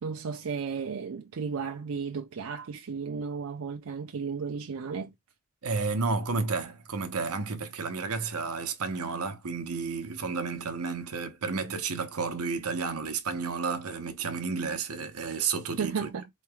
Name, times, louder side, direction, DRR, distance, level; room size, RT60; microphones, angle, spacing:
voice 1, 0.0-5.1 15.8-16.3, right 5 dB, 70° right, 0.5 m, -34 dB
voice 2, 5.6-16.1, right 4 dB, 90° right, 0.9 m, -31 dB
4.4 x 3.1 x 2.2 m
head